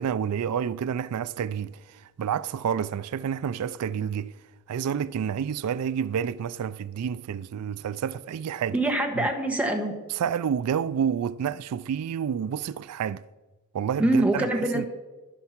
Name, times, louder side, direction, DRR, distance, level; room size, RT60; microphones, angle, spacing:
voice 1, 0.0-4.4 4.7-8.8 9.2-9.3 10.1-13.2 13.7-14.5 14.7-14.8, right 8 dB, 80° right, 0.3 m, -29 dB
voice 2, 8.7-10.0 14.0-14.9, right 1 dB, 5° right, 1.4 m, -24 dB
11.0 x 10.0 x 5.9 m
head